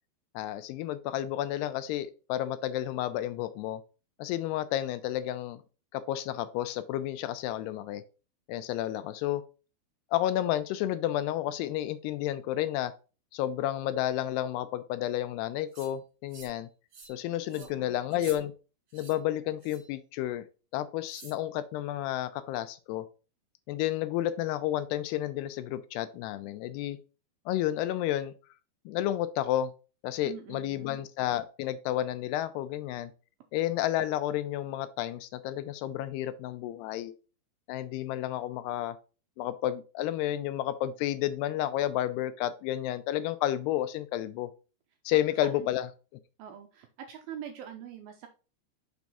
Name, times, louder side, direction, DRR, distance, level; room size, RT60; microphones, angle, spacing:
voice 1, 0.3-3.8 4.2-5.6 5.9-8.0 8.5-9.4 10.1-12.9 13.3-16.7 17.1-18.5 18.9-20.4 20.7-23.1 23.7-27.0 27.5-28.3 28.9-29.7 30.0-33.1 33.5-37.1 37.7-39.0 39.4-44.5 45.1-45.9, left 13 dB, 80° left, 12 dB, 2.5 m, -31 dB
sound 1, 15.7-15.9 16.3-16.6 16.9-17.2 17.5-17.7 18.1-18.4 18.9-19.2 19.6-19.9 21.1-21.4, right 4 dB, 45° right, 2.2 m, -49 dB
voice 2, 17.5-18.1 30.3-31.0 45.4-45.7 46.4-48.3, right 9 dB, 80° right, 5 dB, 2.3 m, -44 dB
6.1 x 4.7 x 4.1 m, 0.33 s
omnidirectional pair, 4.8 m